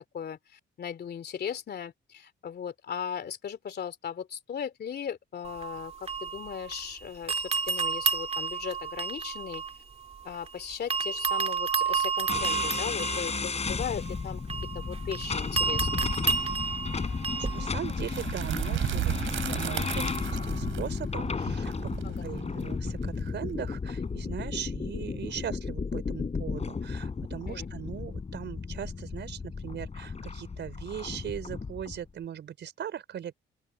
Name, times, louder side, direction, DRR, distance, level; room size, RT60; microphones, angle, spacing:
voice 1, 0.1-9.6 10.2-14.4 14.7-16.2 22.0-22.2 27.5-27.7, left 8 dB, 55° left, 2.8 m, -37 dB
sound 1, 5.4-6.9 7.3-10.5 10.9-17.7, right 5 dB, 30° right, 2.3 m, -31 dB
sound 2, 12.3-32.0, left 4 dB, 35° left, 4.4 m, -34 dB
voice 2, 17.0-21.9 22.2-33.3, right 9 dB, 65° right, 4.8 m, -39 dB
sound 3, 17.9-23.7, right 14 dB, 90° right, 3.6 m, -34 dB
open air
cardioid pair, 90°, 20 cm